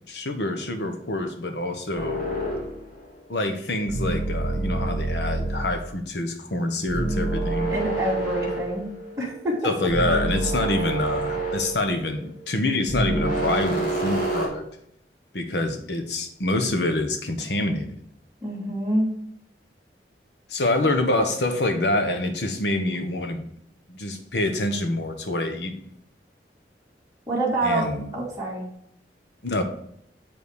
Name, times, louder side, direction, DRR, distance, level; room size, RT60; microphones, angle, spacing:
voice 1, 0.1-2.2 3.3-7.7 9.6-14.6 15.3-17.9 20.5-23.4 23.9-25.8 27.6-28.1 29.4-29.6, left 2 dB, 75° left, 6 dB, 1.2 m, -26 dB
sound 1, 1.9-3.1 3.9-5.8 6.9-9.6 9.9-12.5 12.9-14.5, right 2 dB, 55° left, 2.8 m, -28 dB
voice 2, 7.7-8.9 9.2-9.6 18.4-19.1 27.3-27.9 28.1-28.6, right 1 dB, 20° right, -7 dB, 2.5 m, -26 dB
7.6 x 5.4 x 4.9 m, 0.71 s
head